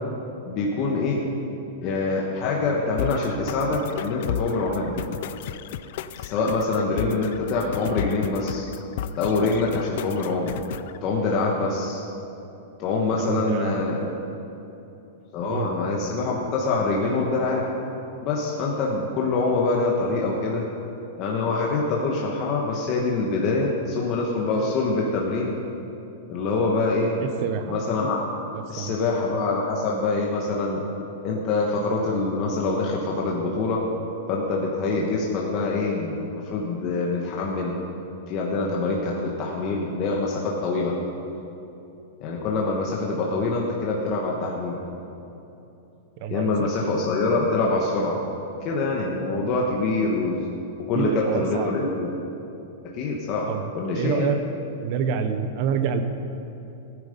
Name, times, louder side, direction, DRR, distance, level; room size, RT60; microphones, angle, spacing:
voice 1, 0.5-1.2 1.8-5.0 6.2-8.7 9.2-10.5 11.0-12.0 12.8-14.1 15.3-17.6 18.2-20.6 21.2-25.6 26.3-27.1 27.7-28.2 28.7-30.8 31.2-33.8 34.3-37.7 38.3-40.9 42.2-44.8 46.3-48.2 48.6-50.5 50.8-52.1 52.9-53.5 53.7-54.3, left 3 dB, 30° left, -2 dB, 1.2 m, -25 dB
sound 1, 3.0-11.0, left 9 dB, 50° left, 0.4 m, -34 dB
voice 2, 13.2-13.8 15.5-15.7 27.2-27.8 28.8-28.9 46.2-46.7 50.9-51.8 53.5-53.7 53.9-54.4 54.8-56.0, right 7 dB, 40° right, 9 dB, 0.8 m, -27 dB
16.0 x 9.6 x 5.3 m, 2.9 s
supercardioid pair, 170°, 0 cm